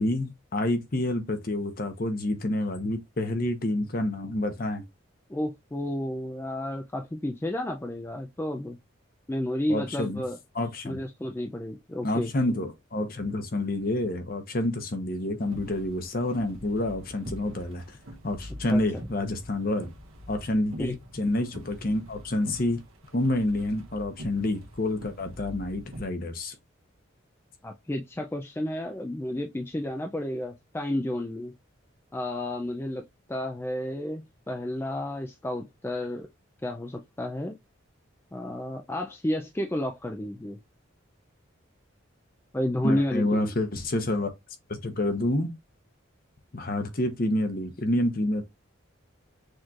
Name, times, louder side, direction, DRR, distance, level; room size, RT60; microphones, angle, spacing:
voice 1, 0.0-4.8 9.7-10.2 10.5-11.0 12.0-18.0 18.2-19.9 20.3-22.8 23.1-26.5 42.8-44.3 44.7-45.5 46.5-48.4, left 1 dB, 45° left, 0.9 m, -28 dB
voice 2, 5.3-8.8 9.3-10.4 10.8-12.3 18.7-18.8 20.8-20.9 27.6-31.5 32.1-33.0 33.3-36.3 36.6-37.5 38.3-40.6 42.5-43.5, left 1 dB, 10° left, 0.3 m, -31 dB
sound 1, 15.4-26.0, equal, 90° right, 1.2 m, -44 dB
6.3 x 3.1 x 2.4 m
head